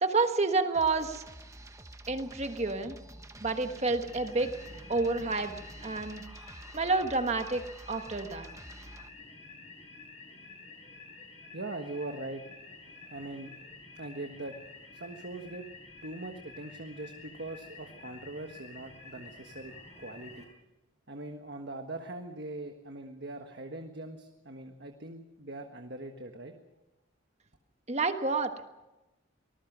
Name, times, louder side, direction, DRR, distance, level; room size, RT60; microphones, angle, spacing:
voice 1, 0.0-1.2 2.1-3.0 3.4-4.5 4.9-5.5 5.8-6.2 6.7-8.5 27.9-28.5, right 3 dB, 30° right, 7 dB, 1.4 m, -29 dB
sound 1, 0.7-9.1, right 1 dB, 15° right, 1.1 m, -49 dB
sound 2, 4.1-20.5, left 3 dB, 30° left, 6.6 m, -50 dB
voice 2, 11.5-12.4 12.8-13.5 13.9-14.6 14.9-15.7 16.0-20.5 21.1-26.5, right 2 dB, 55° right, 5 dB, 1.4 m, -41 dB
24.5 x 19.5 x 6.1 m, 1.0 s
head